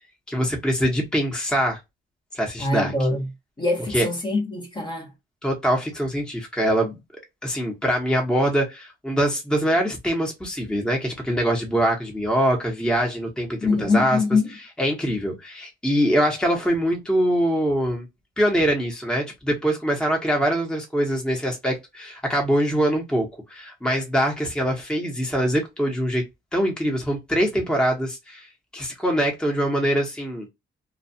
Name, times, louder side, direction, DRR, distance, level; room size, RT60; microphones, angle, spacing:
voice 1, 0.3-1.8 2.3-2.9 3.9-4.1 5.4-6.9 7.4-14.2 14.8-18.1 18.4-26.2 26.5-28.5 28.7-30.5, equal, 5° left, 0.9 m, -23 dB
voice 2, 2.6-3.3 3.6-5.1 13.6-14.5, left 3 dB, 25° left, 1.0 m, -23 dB
2.3 x 2.3 x 2.6 m
cardioid pair, 90°, 20 cm